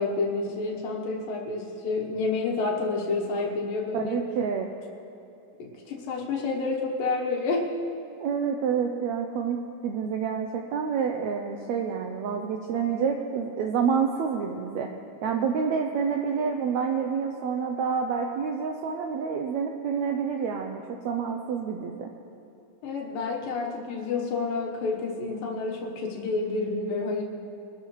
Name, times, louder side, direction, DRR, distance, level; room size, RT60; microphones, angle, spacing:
voice 1, 0.0-4.2 5.6-7.7 22.8-27.2, left 3 dB, 85° left, -1 dB, 2.9 m, -29 dB
voice 2, 3.9-4.7 8.2-14.9 15.2-22.1, right 6 dB, 80° right, 3 dB, 1.6 m, -28 dB
23.0 x 13.0 x 3.2 m, 2.8 s
omnidirectional pair, 3.9 m